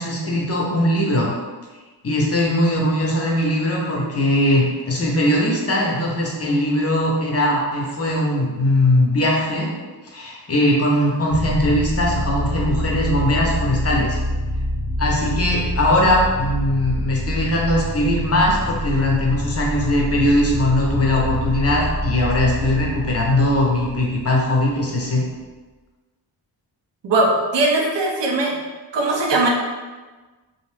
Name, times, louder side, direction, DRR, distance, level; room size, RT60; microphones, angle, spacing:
voice 1, 0.0-1.3 2.0-9.7 10.0-14.2 15.0-25.2, left 1 dB, 35° left, -3 dB, 0.6 m, -20 dB
sound 1, 11.3-24.7, equal, ahead, 1.0 m, -26 dB
voice 2, 27.0-28.6 28.9-29.5, right 2 dB, 75° right, 0 dB, 0.6 m, -19 dB
2.5 x 2.0 x 3.1 m, 1.3 s
cardioid pair, 85°, 43 cm